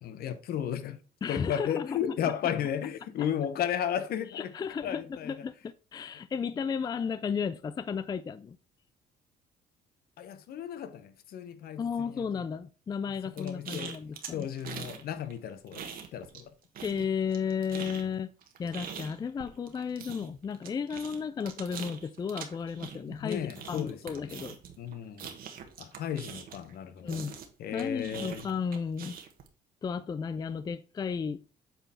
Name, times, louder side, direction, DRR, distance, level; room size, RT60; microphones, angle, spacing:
voice 1, 0.0-1.0 1.3-4.5 4.8-5.4 10.2-12.5 13.1-14.0 14.3-15.9 16.1-16.5 18.1-18.2 18.6-18.7 23.2-24.4 24.8-25.3 25.8-27.2 27.6-28.5, left 9 dB, 65° left, 1.0 m, -34 dB
voice 2, 1.2-2.1 3.2-3.3 4.3-8.6 11.8-14.5 16.8-18.3 18.6-24.6 27.0-27.4 27.7-29.2 29.8-31.4, left 6 dB, 25° left, 0.4 m, -34 dB
sound 1, 13.4-15.0 15.3-16.5 16.7-26.7 27.1-29.5, right 7 dB, 60° right, 1.4 m, -43 dB
8.0 x 4.2 x 4.2 m
cardioid pair, 110°, 17 cm